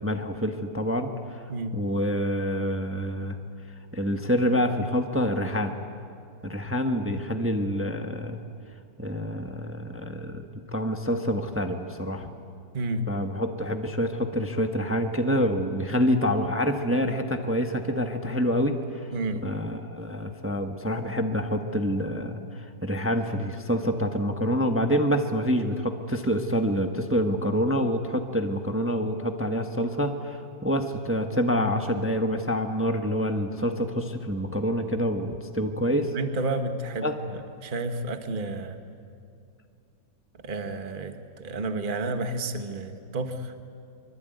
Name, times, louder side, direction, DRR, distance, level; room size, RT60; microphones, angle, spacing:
voice 1, 0.0-1.4 1.7-3.4 3.9-5.7 6.4-8.4 9.0-12.3 13.1-19.1 19.4-36.1 37.0-37.1, equal, 10° right, 5 dB, 1.2 m, -27 dB
voice 2, 12.7-13.1 19.1-19.4 36.1-38.8 40.4-43.5, right 2 dB, 30° right, 7 dB, 1.5 m, -31 dB
24.5 x 24.5 x 9.3 m, 2.4 s
omnidirectional pair, 2.0 m